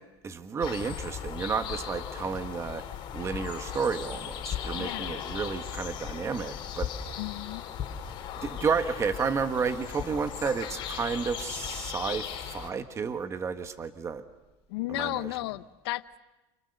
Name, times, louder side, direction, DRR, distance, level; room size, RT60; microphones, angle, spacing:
voice 1, 0.2-2.8 3.1-6.9 8.4-14.2 14.9-15.1, right 5 dB, 20° right, 8 dB, 1.6 m, -31 dB
sound 1, 0.6-12.7, left 8 dB, 40° left, 4.6 m, -37 dB
voice 2, 4.7-5.3 7.2-7.6 14.7-16.0, left 18 dB, 85° left, 12 dB, 0.9 m, -34 dB
29.5 x 29.5 x 6.7 m, 1.0 s
supercardioid pair, 135°, 13 cm